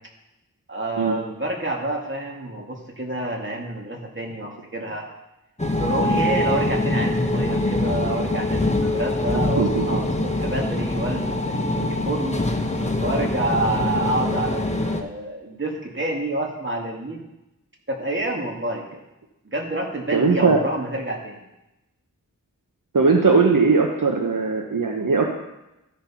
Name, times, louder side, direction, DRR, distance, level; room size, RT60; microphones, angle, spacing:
voice 1, 0.7-5.1 5.8-17.2 17.9-19.0 19.4-21.4, right 1 dB, 35° right, -1 dB, 1.9 m, -28 dB
sound 1, 5.6-15.0, left 1 dB, 20° left, 0.9 m, -24 dB
voice 2, 9.3-10.0 20.1-20.6 22.9-25.2, right 4 dB, 70° right, 1 dB, 0.9 m, -19 dB
13.0 x 4.4 x 5.6 m, 0.93 s
wide cardioid pair, 60°, 34 cm